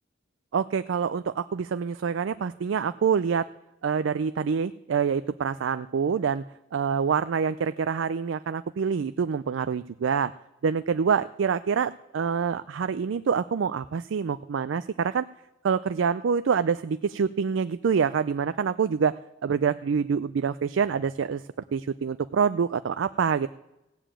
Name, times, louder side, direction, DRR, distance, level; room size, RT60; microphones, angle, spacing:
voice 1, 0.5-3.5 3.8-6.4 6.7-10.3 10.6-15.3 15.6-21.4 21.7-23.5, right 6 dB, 85° right, 13 dB, 0.4 m, -26 dB
16.0 x 7.0 x 8.8 m, 0.94 s
head